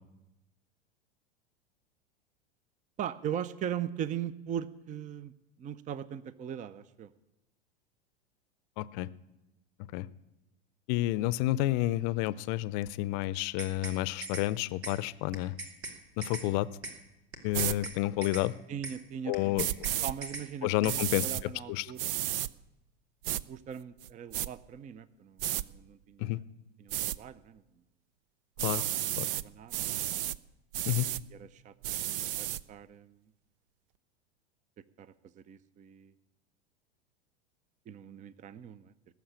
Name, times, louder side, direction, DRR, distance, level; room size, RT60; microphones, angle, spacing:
voice 1, 3.0-5.3 5.6-7.1 18.7-19.7 20.0-22.1 23.5-26.4 26.8-27.6 28.9-30.0 31.3-33.2 35.0-36.1 37.9-38.9, right 9 dB, 25° right, 17 dB, 0.6 m, -40 dB
voice 2, 8.8-9.1 9.9-10.1 10.9-15.5 16.2-16.7 17.4-18.5 19.3-19.7 20.6-21.9 26.2-26.4 28.6-28.9 29.2-29.3 30.8-31.1, left 16 dB, 50° left, 19 dB, 0.7 m, -30 dB
sound 1, 13.3-14.0 14.2-14.5 14.8-15.0 15.3-16.5 16.8-17.0 17.3-18.0 18.2-18.5 18.8-19.0 19.3-20.0 20.2-20.5 20.8-21.0, right 3 dB, 80° right, 2.4 m, -40 dB
sound 2, 17.5-17.8 19.6-20.1 20.9-21.4 22.0-22.5 23.2-23.4 24.0-24.5 25.4-25.6 26.9-27.2 28.6-29.4 29.7-30.4 30.7-31.2 31.8-32.6, right 13 dB, 60° right, 0.6 m, -32 dB
18.5 x 7.2 x 8.8 m, 0.94 s
hypercardioid pair, 90°, 31 cm